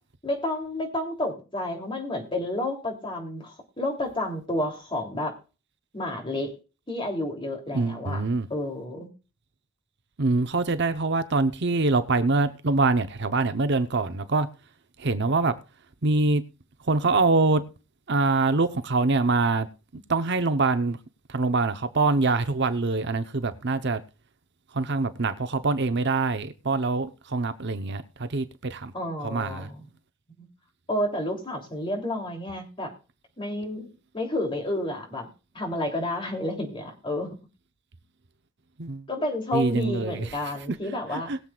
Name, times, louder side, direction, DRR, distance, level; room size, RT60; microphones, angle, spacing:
voice 1, 0.2-5.4 5.9-6.5 6.9-8.2 8.5-9.1 28.9-29.8 30.4-30.5 30.9-32.9 33.4-35.3 35.5-37.3 39.1-41.3, left 1 dB, 25° left, 3.1 m, -30 dB
voice 2, 7.7-8.5 10.2-14.5 15.0-15.5 16.0-16.4 16.8-17.6 18.1-19.7 19.9-21.0 21.3-24.0 24.7-28.9 29.2-29.7 38.8-39.0 39.5-40.3 41.1-41.4, right 3 dB, 55° right, 0.9 m, -24 dB
21.5 x 7.7 x 2.4 m
head